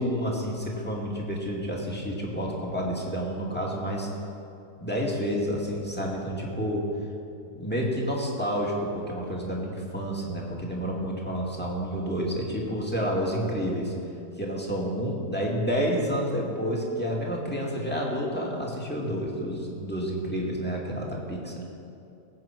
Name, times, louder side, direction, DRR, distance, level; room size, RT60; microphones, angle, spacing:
voice 1, 0.0-4.1 4.8-6.9 7.5-13.9 14.4-21.5, equal, 5° left, -3 dB, 2.4 m, -29 dB
20.5 x 8.4 x 6.1 m, 2.6 s
omnidirectional pair, 1.6 m